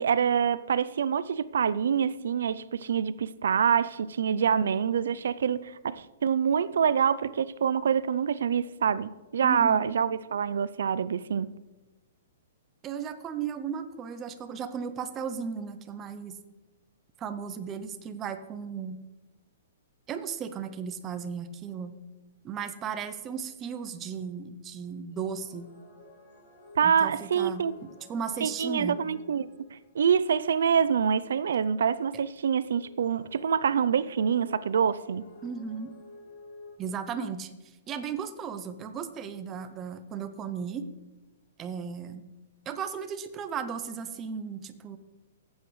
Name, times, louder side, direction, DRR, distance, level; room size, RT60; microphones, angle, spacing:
voice 1, 0.0-11.5 26.8-27.7 28.4-35.2, right 7 dB, 75° right, 0.4 m, -26 dB
voice 2, 9.4-9.9 12.8-16.3 17.2-19.0 20.1-22.0 22.4-25.7 26.8-29.0 35.4-35.9 36.8-37.5 37.9-40.9 41.6-42.2 42.7-45.0, right 6 dB, 15° right, 0.5 m, -35 dB
sound 1, 25.1-30.2 32.7-36.8, left 2 dB, 55° left, 4.1 m, -51 dB
14.5 x 8.2 x 3.2 m
hypercardioid pair, 175°, 0 cm